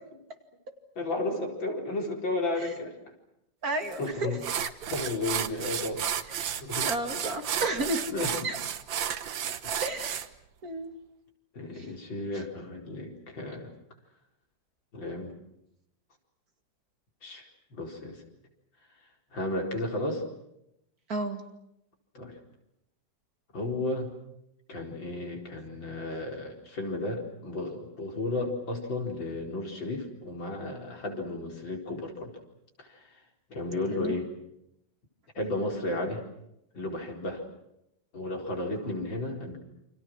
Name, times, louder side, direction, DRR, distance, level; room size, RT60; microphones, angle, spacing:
voice 1, 1.0-3.0 4.0-4.4 4.9-6.0 6.6-6.9 8.1-8.4 9.6-9.8 11.5-13.7 14.9-15.3 17.2-18.2 19.3-20.2 22.2-22.4 23.5-24.1 24.7-32.3 32.8-33.2 33.5-34.3 35.4-36.2 36.7-37.4 38.1-39.6, left 2 dB, 85° left, 2 dB, 5.3 m, -33 dB
voice 2, 3.6-4.7 6.4-6.5 6.8-8.0 8.4-8.6 9.8-10.2 10.6-10.9 11.8-11.9 21.1-21.4 33.9-34.1, right 2 dB, 50° right, 6 dB, 2.9 m, -32 dB
sound 1, 3.9-4.0 4.4-10.3, right 9 dB, 80° right, 1.9 m, -32 dB
29.0 x 26.5 x 6.3 m, 0.80 s
omnidirectional pair, 2.0 m